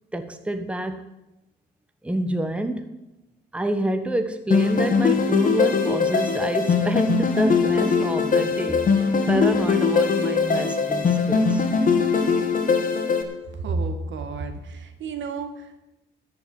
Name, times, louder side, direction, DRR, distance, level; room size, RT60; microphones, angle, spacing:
voice 1, 0.1-1.0 2.0-2.9 3.5-11.6, right 1 dB, 5° right, 8 dB, 1.1 m, -28 dB
sound 1, 4.5-13.2, left 5 dB, 45° left, 2.2 m, -21 dB
voice 2, 13.5-15.8, right 3 dB, 70° right, 7 dB, 1.8 m, -31 dB
13.5 x 5.7 x 9.6 m, 0.96 s
cardioid pair, 90°, 20 cm